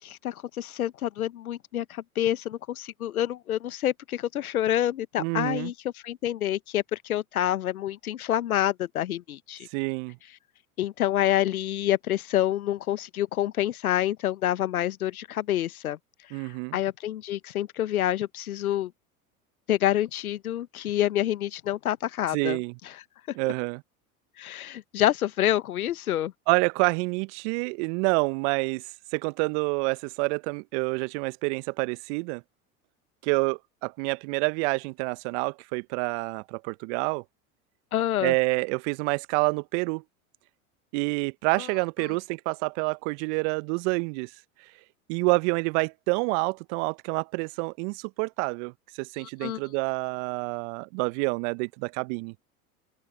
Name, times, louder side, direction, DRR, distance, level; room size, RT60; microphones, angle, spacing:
voice 1, 0.0-5.7 6.0-9.7 10.8-16.0 16.3-18.9 19.7-22.6 24.4-26.3 37.9-38.3 41.6-41.7 49.2-49.6, left 12 dB, 80° left, 1.1 m, -27 dB
voice 2, 5.2-5.7 9.7-10.2 16.3-16.8 22.3-22.7 23.3-23.8 26.5-28.8 29.1-32.4 33.2-37.2 38.2-40.0 40.9-44.3 45.1-52.3, right 31 dB, 55° right, 1.0 m, -28 dB
open air
hypercardioid pair, 80°, 43 cm